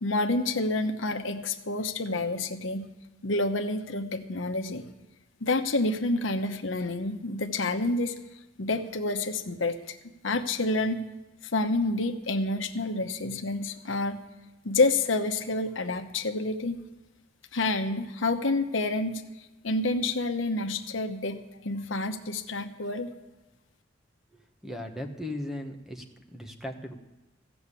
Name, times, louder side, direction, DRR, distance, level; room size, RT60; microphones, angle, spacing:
voice 1, 0.0-2.9 3.2-4.8 5.4-8.2 8.6-10.0 10.2-11.0 11.4-14.2 14.6-16.8 17.5-19.2 19.6-23.1, left 2 dB, 80° left, 7 dB, 1.0 m, -28 dB
voice 2, 24.3-26.0 26.3-27.0, left 1 dB, ahead, 3 dB, 1.1 m, -37 dB
15.0 x 7.1 x 8.4 m, 1.1 s
head